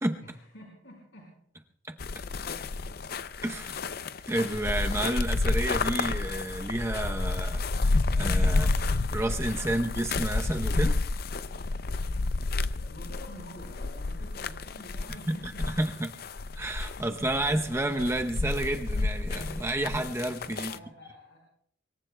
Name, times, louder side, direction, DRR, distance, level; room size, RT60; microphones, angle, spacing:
voice 1, 0.2-1.4 2.5-2.8 8.5-8.9 12.5-16.1 20.6-21.5, equal, 70° left, -1 dB, 4.9 m, -49 dB
sound 1, 2.0-20.8, left 3 dB, 50° left, 0.5 m, -30 dB
voice 2, 3.4-3.9 4.3-8.7 9.1-11.0 15.3-15.4 15.8-16.1 16.5-20.7, right 1 dB, 15° right, 4 dB, 0.7 m, -30 dB
25.0 x 23.0 x 2.2 m, 0.67 s
head